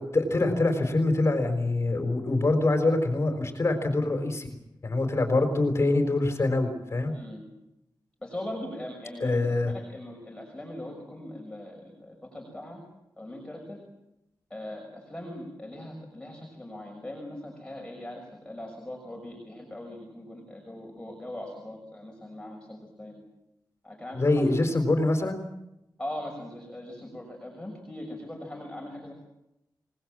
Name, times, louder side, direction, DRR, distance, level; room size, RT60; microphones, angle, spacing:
voice 1, 0.0-4.5 4.8-7.1 9.2-9.7 24.1-25.4, left 2 dB, 35° left, 6 dB, 4.1 m, -25 dB
voice 2, 7.1-7.4 8.2-12.8 13.2-13.8 14.5-23.2 23.8-24.4 26.0-29.1, left 1 dB, 10° left, 1 dB, 6.0 m, -40 dB
27.5 x 19.5 x 7.6 m, 0.87 s
wide cardioid pair, 140°, 8 cm